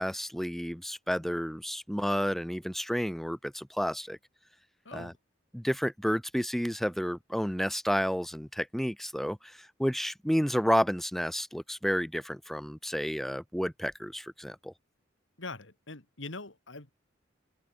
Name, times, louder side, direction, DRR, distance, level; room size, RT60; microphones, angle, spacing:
voice 1, 0.0-4.2 4.9-5.1 5.5-14.7, equal, ahead, 1.5 m, -31 dB
voice 2, 4.8-5.2 15.4-16.9, left 3 dB, 85° left, 2.7 m, -42 dB
head